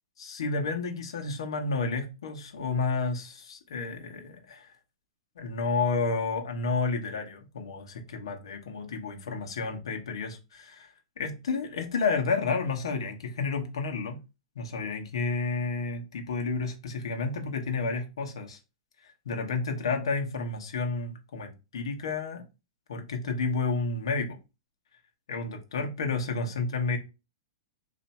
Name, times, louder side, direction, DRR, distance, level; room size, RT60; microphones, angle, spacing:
voice 1, 0.2-4.7 5.4-10.9 11.2-14.2 14.5-18.6 19.0-22.4 22.9-24.4 25.3-27.0, left 4 dB, 85° left, 3 dB, 1.1 m, -31 dB
3.3 x 2.7 x 4.2 m, 0.28 s
hypercardioid pair, 145°, 3 cm